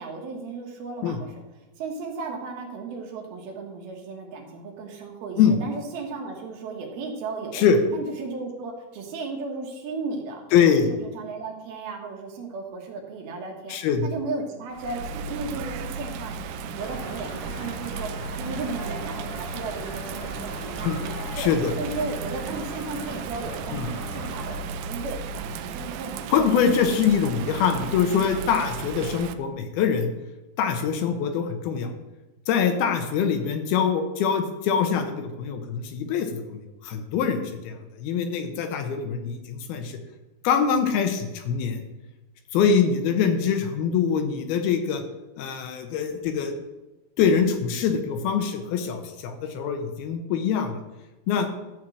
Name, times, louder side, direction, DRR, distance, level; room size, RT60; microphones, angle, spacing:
voice 1, 0.0-7.7 7.9-13.8 14.0-16.4 16.7-21.5 21.8-26.3, right 3 dB, 70° right, 1 dB, 3.3 m, -35 dB
voice 2, 10.5-10.9 13.7-14.1 20.8-21.0 21.4-21.7 23.7-23.8 26.3-30.1 30.6-31.9 32.5-40.0 40.4-41.8 42.5-45.0 45.4-46.5 47.2-50.8 51.3-51.5, left 7 dB, 75° left, 6 dB, 2.8 m, -24 dB
Bird vocalization bird call bird song / Rain, 14.7-29.3, right 5 dB, 90° right, 2.7 m, -35 dB
sound 1, 16.8-24.6, left 1 dB, 40° left, 1.6 m, -39 dB
12.0 x 4.5 x 7.7 m, 1.0 s
omnidirectional pair, 4.6 m